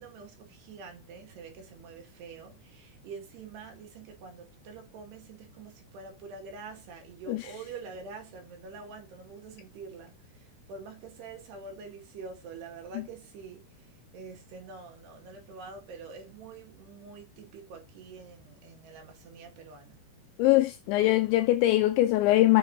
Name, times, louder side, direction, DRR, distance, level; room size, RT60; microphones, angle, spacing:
voice 1, 0.0-20.0, right 4 dB, 60° right, 3.9 m, -46 dB
voice 2, 20.4-22.6, left 16 dB, 85° left, 2.6 m, -22 dB
6.9 x 6.4 x 4.0 m
omnidirectional pair, 5.7 m